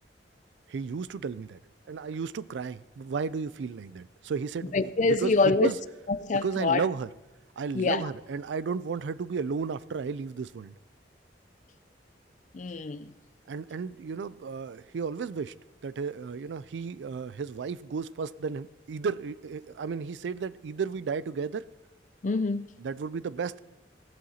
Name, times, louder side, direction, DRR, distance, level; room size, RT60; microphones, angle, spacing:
voice 1, 0.7-1.6 1.9-5.8 6.4-7.1 7.6-10.7 13.5-15.6 15.8-21.6 22.8-23.6, right 5 dB, 85° right, 0.4 m, -33 dB
voice 2, 4.7-5.7 6.1-6.8 7.7-8.0 12.5-13.1 22.2-22.8, left 3 dB, 45° left, 0.4 m, -26 dB
16.5 x 11.0 x 2.8 m
head